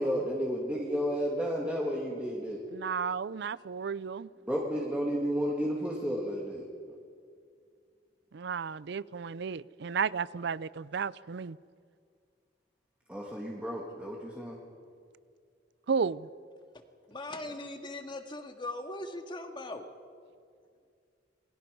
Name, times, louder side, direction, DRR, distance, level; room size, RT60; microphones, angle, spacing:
voice 1, 0.0-2.6 4.5-6.6 13.1-14.6, equal, 5° right, -3 dB, 2.4 m, -32 dB
voice 2, 2.7-4.3 8.3-11.6 15.9-16.3, right 6 dB, 65° right, 19 dB, 0.5 m, -33 dB
voice 3, 17.1-19.8, left 2 dB, 25° left, 5 dB, 1.8 m, -40 dB
28.5 x 21.0 x 5.5 m, 2.2 s
head